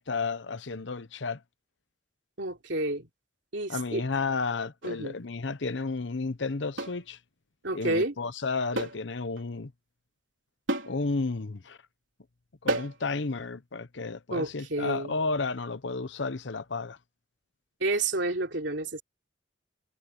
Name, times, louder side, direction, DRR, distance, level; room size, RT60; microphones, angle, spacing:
voice 1, 0.0-1.4 3.7-7.2 7.7-9.7 10.8-11.8 12.6-17.0, left 4 dB, 70° left, 0.9 m, -32 dB
voice 2, 2.4-3.1 3.5-4.0 4.8-5.1 7.6-8.1 14.3-15.1 17.8-19.0, right 2 dB, 65° right, 3.3 m, -30 dB
sound 1, 4.8-5.0 6.8-7.0 8.8-9.1 9.4-9.5 10.7-11.0 12.7-13.0, right 2 dB, 85° right, 4.0 m, -31 dB
head